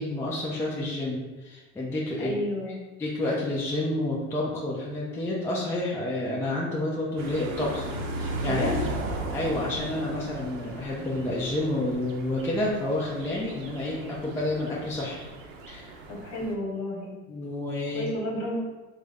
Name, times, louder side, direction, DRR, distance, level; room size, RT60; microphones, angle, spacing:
voice 1, 0.0-2.3 2.7-2.8 3.0-7.9 8.1-8.9 9.3-15.2 15.7-16.0 17.3-18.1, left 1 dB, 5° left, -5 dB, 0.4 m, -29 dB
voice 2, 2.2-2.8 8.4-8.8 16.1-17.1 17.9-18.6, left 1 dB, 45° left, -2 dB, 1.2 m, -31 dB
sound 1, 7.2-16.5, right 2 dB, 85° right, 0.6 m, -36 dB
3.4 x 2.1 x 3.4 m, 1.2 s
supercardioid pair, 110°, 38 cm